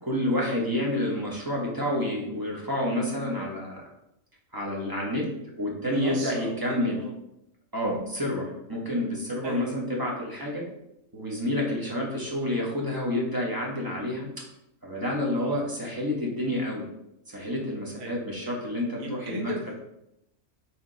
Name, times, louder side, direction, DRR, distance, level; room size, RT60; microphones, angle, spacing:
voice 1, 0.0-3.9 4.5-5.3 5.6-7.0 7.7-10.6 11.1-14.3 14.8-16.9 17.3-19.5, left 1 dB, 20° right, -3 dB, 0.8 m, -29 dB
voice 2, 5.8-7.1 9.4-9.7 15.3-15.5 18.0-18.2 19.0-19.8, right 1 dB, 60° right, 0 dB, 1.2 m, -36 dB
4.5 x 2.9 x 3.8 m, 0.82 s
omnidirectional pair, 1.4 m